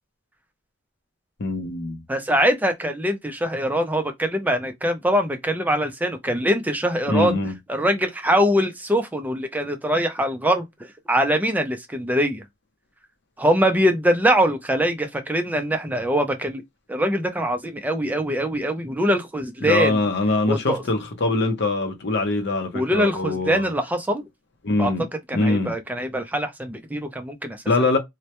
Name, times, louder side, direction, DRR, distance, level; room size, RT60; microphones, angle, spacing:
voice 1, 1.4-2.0 7.1-7.5 19.6-23.7 24.6-25.1 25.3-25.7 27.7-28.0, left 2 dB, 60° left, 0.6 m, -23 dB
voice 2, 2.1-7.4 7.7-12.5 13.4-16.6 16.9-20.0 20.5-20.8 22.7-24.2 24.8-24.9 25.3-27.6, equal, 10° right, 0.4 m, -23 dB
2.1 x 2.0 x 2.8 m
head